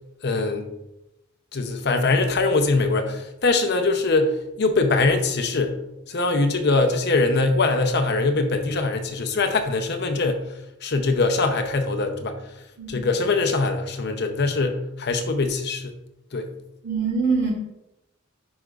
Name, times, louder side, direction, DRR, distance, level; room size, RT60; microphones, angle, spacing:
voice 1, 0.2-0.7 1.5-5.8 6.1-10.5 10.8-12.4 12.9-15.9 16.3-16.5, left 3 dB, 50° left, 6 dB, 0.7 m, -22 dB
voice 2, 16.8-17.5, right 4 dB, 55° right, -2 dB, 2.5 m, -24 dB
11.0 x 5.0 x 2.4 m, 0.91 s
head